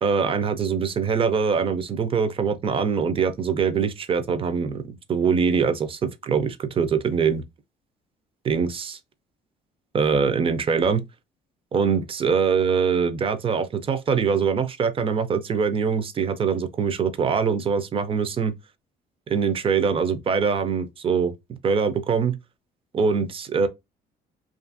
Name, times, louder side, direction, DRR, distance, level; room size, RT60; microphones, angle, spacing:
voice 1, 0.0-4.8 5.1-7.4 8.4-9.0 9.9-11.0 11.7-18.5 19.3-21.3 21.6-22.4 22.9-23.7, right 6 dB, 35° right, 0.5 m, -23 dB
2.7 x 2.5 x 2.5 m
cardioid pair, 110°, 17 cm